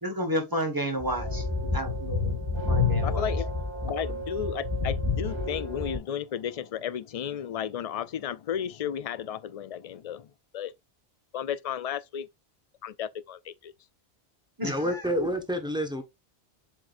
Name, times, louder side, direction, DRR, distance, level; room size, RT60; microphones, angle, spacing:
voice 1, 0.0-1.5 1.7-2.4 2.7-3.3 14.6-15.3, equal, 20° right, 1.6 m, -31 dB
sound 1, 1.0-6.0, left 3 dB, 25° left, 2.1 m, -29 dB
voice 2, 3.0-10.3 10.5-10.7 11.3-12.3 12.8-13.7, left 9 dB, 50° left, 0.4 m, -34 dB
voice 3, 14.6-16.0, equal, 5° right, 1.2 m, -28 dB
7.5 x 4.9 x 2.5 m
omnidirectional pair, 1.1 m